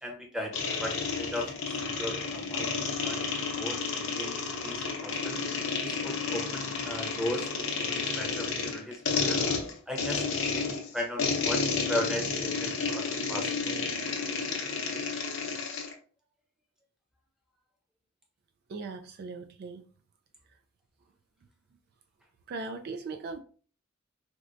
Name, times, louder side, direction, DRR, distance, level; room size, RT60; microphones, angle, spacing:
voice 1, 0.0-2.7 3.0-5.4 5.8-9.4 9.9-10.2 10.5-11.6 11.9-13.7, left 1 dB, 5° right, 0.7 m, -37 dB
sound 1, 0.5-15.9, left 4 dB, 65° left, 0.7 m, -31 dB
voice 2, 18.7-19.8 22.5-23.4, right 3 dB, 50° right, 0.3 m, -38 dB
4.2 x 2.1 x 2.5 m
head